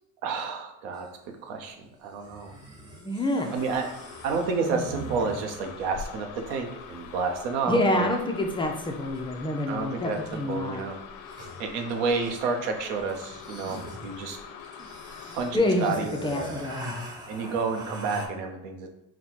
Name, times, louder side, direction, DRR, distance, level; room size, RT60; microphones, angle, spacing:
voice 1, 0.2-2.5 3.5-3.9 4.2-8.1 9.7-11.0 11.6-14.4 15.3-16.1 17.3-18.9, right 4 dB, 90° right, 4 dB, 0.8 m, -30 dB
sound 1, 0.9-1.1 2.2-5.7 9.1-9.2 10.1-10.5 10.8-10.9 11.1-12.6 13.1-18.3, right 1 dB, 10° right, 0.8 m, -41 dB
voice 2, 3.0-3.5 7.7-10.8 15.5-15.9 16.2-16.9, left 1 dB, 15° left, 2 dB, 0.4 m, -27 dB
sound 2, 3.5-15.6, left 7 dB, 70° left, 0.5 m, -44 dB
4.0 x 2.2 x 4.5 m, 0.85 s
cardioid pair, 120°, 34 cm